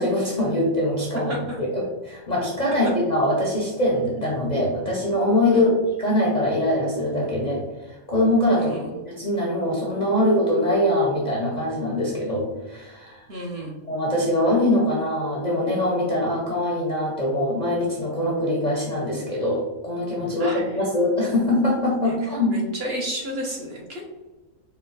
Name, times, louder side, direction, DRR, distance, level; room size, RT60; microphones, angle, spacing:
voice 1, 0.0-1.3 1.6-5.7 6.0-7.6 7.9-8.7 9.1-13.2 13.9-22.6, left 1 dB, 40° left, -3 dB, 0.7 m, -23 dB
voice 2, 1.3-1.6 5.5-5.8 8.5-9.0 13.3-13.7 20.4-20.7 22.0-22.1 22.5-24.1, equal, 50° right, -2 dB, 0.9 m, -32 dB
4.4 x 2.2 x 3.8 m, 1.2 s
omnidirectional pair, 1.5 m